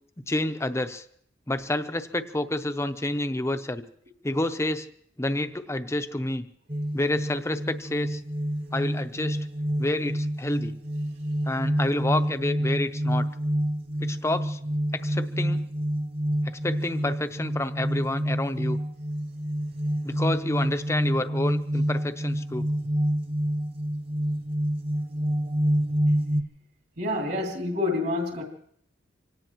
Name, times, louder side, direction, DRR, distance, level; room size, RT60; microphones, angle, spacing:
voice 1, 0.3-1.0 1.5-3.8 4.2-4.9 5.2-6.4 6.9-8.2 8.7-9.4 9.8-10.7 11.5-13.3 14.0-14.6 14.9-15.7 16.6-18.8 20.0-22.7, left 1 dB, 15° left, 9 dB, 0.7 m, -29 dB
sound 1, 6.7-26.4, equal, 30° right, 1.0 m, -28 dB
voice 2, 27.0-28.4, left 2 dB, 60° right, 1 dB, 2.6 m, -27 dB
25.0 x 18.0 x 3.0 m, 0.65 s
head